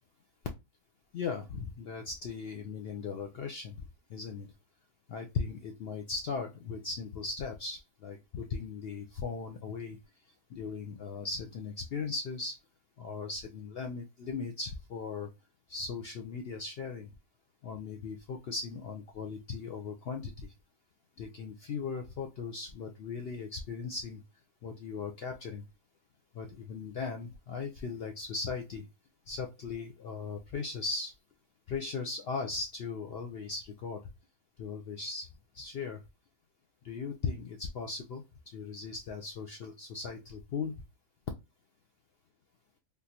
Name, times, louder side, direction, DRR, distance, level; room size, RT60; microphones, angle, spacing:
voice 1, 1.1-3.8 4.1-4.5 5.1-10.0 10.5-12.5 13.0-15.3 15.7-17.1 17.6-20.5 21.2-24.2 24.6-25.6 26.3-28.9 29.3-31.1 31.7-34.0 34.6-35.3 35.5-36.0 36.8-40.7, left 4 dB, 75° left, 4 dB, 0.5 m, -38 dB
3.6 x 2.4 x 2.8 m, 0.23 s
omnidirectional pair, 1.6 m